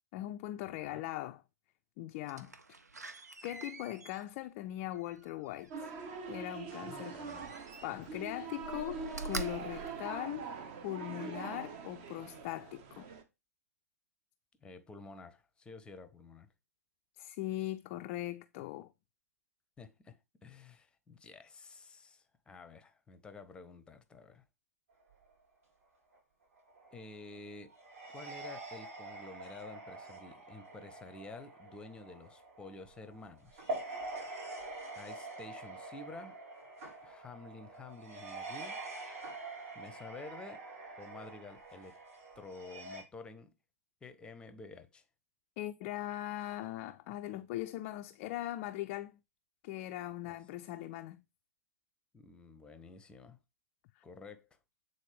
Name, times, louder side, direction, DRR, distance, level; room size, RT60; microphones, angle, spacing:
voice 1, 0.1-1.4 2.0-2.8 3.4-5.9 6.3-7.2 7.8-10.5 10.8-13.1 17.2-18.9 45.6-49.2 49.6-51.2 54.0-54.1, left 14 dB, 35° left, 0.4 m, -40 dB
Slam, 2.3-6.1 7.2-8.2 8.5-10.8 11.3-11.4, right 4 dB, 85° right, 0.8 m, -46 dB
sound 1, 5.7-13.2, right 5 dB, 40° right, 1.1 m, -44 dB
voice 2, 6.8-7.5 14.6-16.5 19.8-24.4 26.9-27.7 28.1-33.7 35.0-36.4 37.0-38.8 39.7-40.6 41.0-42.0 42.3-43.5 44.0-45.0 50.2-50.4 52.1-53.4 54.0-54.5, left 3 dB, 10° left, 0.7 m, -50 dB
sound 2, 25.0-25.3 26.1-26.2 26.6-43.0, right 2 dB, 55° right, 4.3 m, -46 dB
8.3 x 4.0 x 3.3 m
figure-of-eight pair, 115°, 9 cm